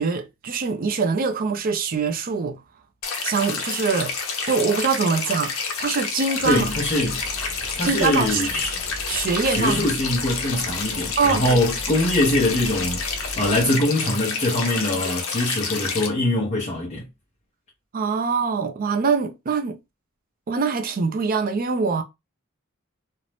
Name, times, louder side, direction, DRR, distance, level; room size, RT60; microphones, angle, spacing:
voice 1, 0.0-2.6 3.2-4.2 4.5-6.7 7.8-8.5 9.1-9.9 11.2-11.6 17.9-19.8 20.5-22.0, right 5 dB, 45° right, 0.4 m, -23 dB
sound 1, 3.0-16.1, left 5 dB, 75° left, 0.7 m, -29 dB
voice 2, 6.4-7.2 7.8-8.7 9.4-17.1, left 1 dB, 35° left, 0.7 m, -23 dB
sound 2, 6.4-13.7, equal, 5° left, 0.8 m, -38 dB
2.6 x 2.0 x 3.2 m
head